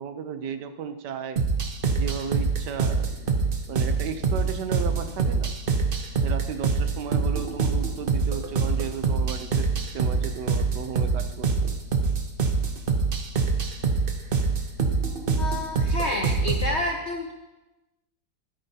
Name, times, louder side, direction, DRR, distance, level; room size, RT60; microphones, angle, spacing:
voice 1, 0.0-1.4 1.9-3.3 3.7-5.5 6.2-11.8, right 7 dB, 75° right, 9 dB, 1.2 m, -34 dB
sound 1, 1.4-16.7, right 4 dB, 50° right, 0.6 m, -25 dB
voice 2, 15.4-17.3, left 2 dB, 65° left, 2 dB, 0.7 m, -29 dB
13.0 x 9.1 x 2.8 m, 1.1 s
omnidirectional pair, 2.0 m